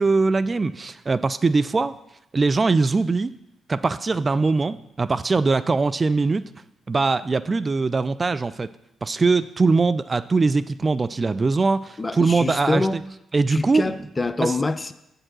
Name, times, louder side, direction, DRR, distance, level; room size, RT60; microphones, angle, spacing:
voice 1, 0.0-1.9 2.3-3.3 3.7-6.5 6.9-8.7 9.0-13.0 13.3-13.9 14.4-14.5, right 3 dB, 35° right, 14 dB, 0.4 m, -21 dB
voice 2, 12.0-13.0 13.5-14.9, left 2 dB, 30° left, 13 dB, 0.6 m, -25 dB
7.6 x 6.6 x 6.0 m, 0.82 s
hypercardioid pair, 45°, 0 cm